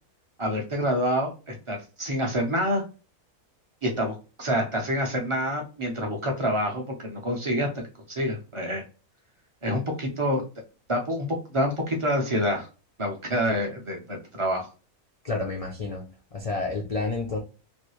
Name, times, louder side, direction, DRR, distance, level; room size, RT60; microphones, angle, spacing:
voice 1, 0.4-2.8 3.8-7.7 8.1-8.8 9.6-10.4 10.9-12.7 13.0-14.7, equal, 35° right, 1 dB, 0.5 m, -27 dB
voice 2, 15.2-16.0 16.3-17.4, left 3 dB, 65° left, 1 dB, 0.3 m, -30 dB
3.1 x 2.6 x 3.0 m, 0.32 s
omnidirectional pair, 1.5 m